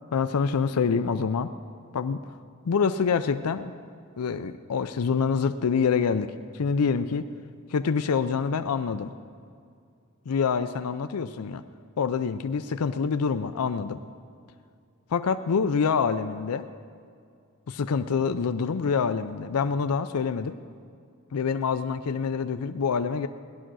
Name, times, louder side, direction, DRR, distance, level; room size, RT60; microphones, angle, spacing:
voice 1, 0.1-1.5 1.9-2.3 2.7-3.7 4.2-7.3 7.7-9.1 10.3-11.6 12.0-14.0 15.1-16.7 17.7-20.6 21.3-23.3, left 5 dB, 90° left, 10 dB, 0.5 m, -26 dB
17.5 x 11.5 x 6.2 m, 2.3 s
head